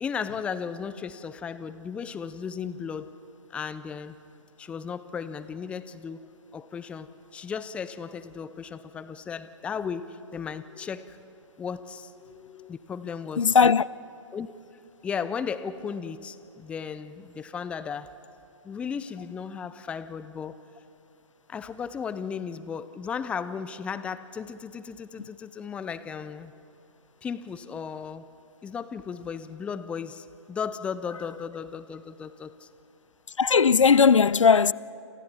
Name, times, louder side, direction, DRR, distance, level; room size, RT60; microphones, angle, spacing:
voice 1, 0.0-3.1 3.5-4.2 4.6-6.2 6.5-11.2 11.6-13.6 14.3-14.5 15.0-18.2 18.6-20.6 21.5-26.5 27.2-28.3 28.6-32.7, left 6 dB, 5° left, 0.4 m, -35 dB
voice 2, 13.4-13.8 33.4-34.7, left 6 dB, 80° left, 0.5 m, -18 dB
29.0 x 27.5 x 4.3 m
figure-of-eight pair, 130°, 16 cm